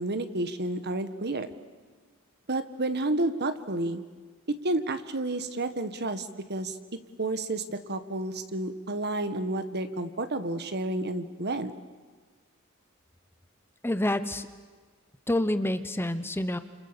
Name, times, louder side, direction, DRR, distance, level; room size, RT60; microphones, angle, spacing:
voice 1, 0.0-1.5 2.5-4.0 4.6-6.8 7.2-11.7, right 2 dB, 50° right, 10 dB, 1.6 m, -30 dB
voice 2, 13.8-14.5 15.3-16.6, left 1 dB, 10° left, 11 dB, 1.0 m, -27 dB
30.0 x 28.5 x 7.0 m, 1.4 s
head